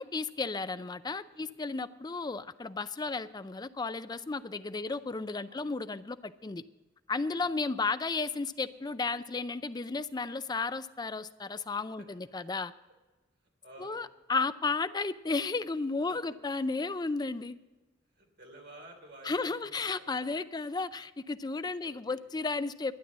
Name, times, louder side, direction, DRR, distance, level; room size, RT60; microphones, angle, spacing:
voice 1, 0.0-6.6 7.1-12.7 13.8-17.6 19.2-22.9, left 3 dB, 20° left, 13 dB, 0.4 m, -33 dB
voice 2, 13.6-14.0 16.1-16.2 18.1-20.3 21.8-22.2, right 1 dB, 60° right, 2 dB, 3.2 m, -53 dB
12.0 x 9.6 x 7.3 m, 1.1 s
head